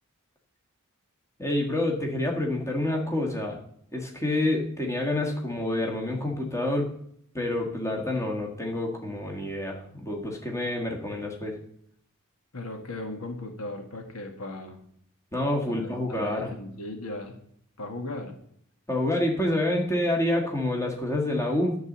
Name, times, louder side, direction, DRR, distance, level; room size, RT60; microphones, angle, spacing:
voice 1, 1.4-3.6 3.9-6.9 7.3-11.6 15.3-16.5 18.9-21.8, left 1 dB, 15° left, 0 dB, 1.6 m, -28 dB
voice 2, 12.5-14.8 15.7-17.4 17.8-18.4, left 2 dB, 70° left, 4 dB, 1.7 m, -37 dB
11.0 x 4.0 x 7.2 m, 0.67 s
head